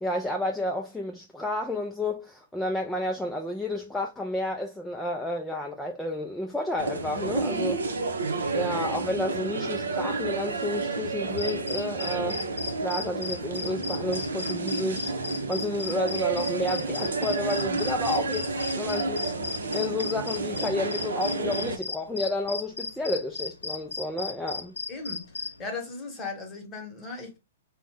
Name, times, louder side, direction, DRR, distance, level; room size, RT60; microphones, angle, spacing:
voice 1, 0.0-7.9 8.5-12.4 12.8-24.8, left 1 dB, 5° left, 0.4 m, -31 dB
sound 1, 6.8-21.8, right 3 dB, 80° right, 0.6 m, -30 dB
sound 2, 11.4-25.7, left 4 dB, 90° left, 0.5 m, -36 dB
voice 2, 24.9-27.4, left 3 dB, 20° left, 1.0 m, -37 dB
2.5 x 2.1 x 3.3 m
hypercardioid pair, 120°, 0 cm